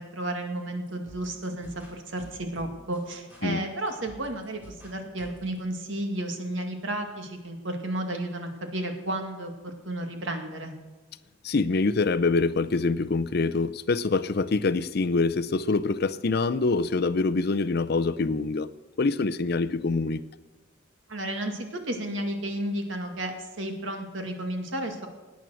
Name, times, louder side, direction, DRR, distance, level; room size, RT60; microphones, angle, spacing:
voice 1, 0.0-10.7 21.1-25.1, right 1 dB, 70° right, 5 dB, 2.2 m, -32 dB
sound 1, 0.6-5.6, equal, 10° right, 4.6 m, -51 dB
voice 2, 11.4-18.7 19.0-20.2, left 3 dB, 50° left, 14 dB, 0.5 m, -25 dB
18.0 x 9.2 x 6.3 m, 1.2 s
head